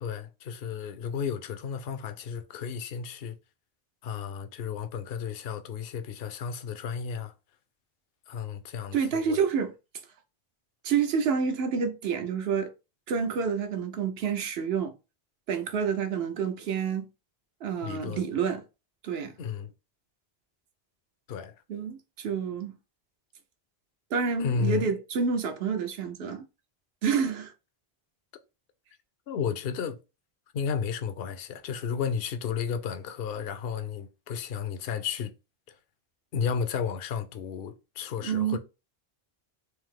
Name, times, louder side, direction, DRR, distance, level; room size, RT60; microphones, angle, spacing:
voice 1, 0.0-3.4 4.0-7.3 8.3-9.4 17.8-18.2 19.4-19.7 21.3-21.5 24.4-24.9 29.3-30.0 30.5-35.3 35.7-35.8 36.3-38.6, left 6 dB, 70° left, 0.8 m, -33 dB
voice 2, 8.9-9.7 10.8-12.7 13.1-14.9 15.5-17.0 17.6-18.6 19.0-19.3 21.7-22.7 24.1-26.4 27.0-27.5 38.2-38.6, right 6 dB, 75° right, 0.9 m, -28 dB
3.5 x 2.7 x 3.6 m
omnidirectional pair, 1.0 m